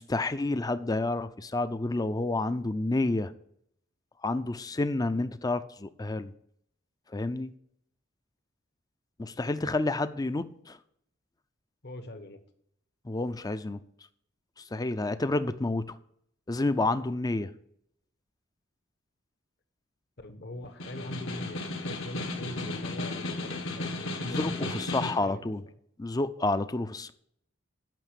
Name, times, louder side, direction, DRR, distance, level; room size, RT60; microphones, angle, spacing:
voice 1, 0.0-3.3 4.2-6.3 7.1-7.5 9.2-10.8 13.0-13.8 14.6-15.9 16.5-17.5 24.3-25.6 26.0-27.1, left 2 dB, 20° left, 12 dB, 0.5 m, -29 dB
voice 2, 11.8-12.4 20.2-25.4, left 1 dB, 55° left, 8 dB, 1.1 m, -42 dB
Snare drum, 20.7-25.3, left 2 dB, 70° left, 1.5 m, -34 dB
9.2 x 5.8 x 8.2 m, 0.70 s
head